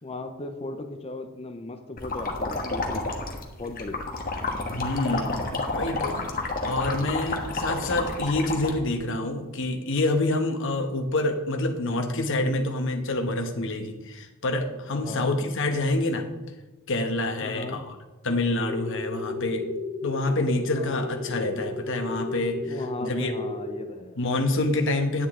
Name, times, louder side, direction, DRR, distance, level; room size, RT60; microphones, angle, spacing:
voice 1, 0.0-3.1 3.6-4.0 14.9-15.3 17.4-17.8 20.7-21.1 22.6-24.2, left 2 dB, 25° left, 7 dB, 0.6 m, -37 dB
sound 1, 2.0-8.7, left 3 dB, 45° left, 1.3 m, -30 dB
voice 2, 4.7-6.2 6.6-16.3 16.9-17.9 18.2-19.7 20.0-23.3 24.2-25.3, left 2 dB, 60° left, 5 dB, 1.2 m, -27 dB
sound 2, 18.6-23.6, left 3 dB, 20° right, 1.9 m, -34 dB
10.0 x 9.3 x 3.7 m, 1.1 s
head